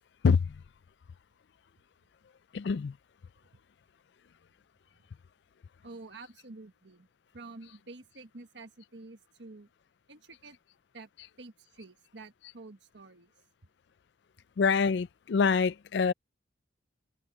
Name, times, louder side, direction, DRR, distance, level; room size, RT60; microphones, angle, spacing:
voice 1, 2.5-2.9 14.6-16.1, left 5 dB, 65° left, 0.4 m, -25 dB
voice 2, 5.8-7.1 7.3-9.7 10.1-10.6 10.9-11.1 11.4-13.3, right 3 dB, 75° right, 1.5 m, -49 dB
head